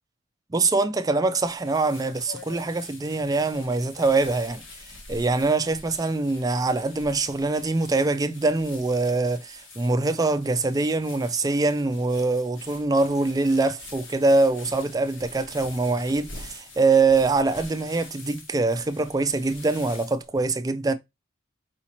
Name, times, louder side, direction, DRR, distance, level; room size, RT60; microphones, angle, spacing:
voice 1, 0.5-4.6 5.1-20.9, right 3 dB, 20° right, 0.4 m, -23 dB
sound 1, 1.4-20.3, left 3 dB, 75° left, 1.3 m, -45 dB
4.9 x 2.8 x 2.9 m
head